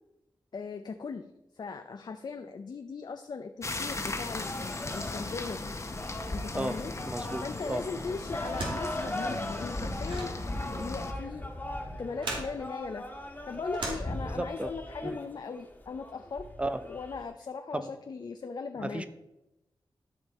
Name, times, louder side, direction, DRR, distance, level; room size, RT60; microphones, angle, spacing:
voice 1, 0.5-1.3 1.5-5.7 6.3-6.9 7.4-10.4 10.7-11.5 12.0-13.1 13.4-16.5 16.8-19.0, left 5 dB, 60° left, 7 dB, 0.5 m, -39 dB
sound 1, 3.6-11.1, left 3 dB, 35° left, 1.0 m, -38 dB
sound 2, 4.3-17.2, left 1 dB, 20° left, 1.5 m, -39 dB
voice 2, 7.1-7.8 14.2-14.7 15.0-15.2 16.6-16.8 17.7-17.9 18.8-19.1, right 1 dB, 15° right, 11 dB, 0.6 m, -34 dB
sound 3, 8.3-14.7, right 2 dB, 85° right, 2.5 m, -40 dB
13.0 x 5.3 x 4.2 m, 0.94 s
wide cardioid pair, 110°, 8 cm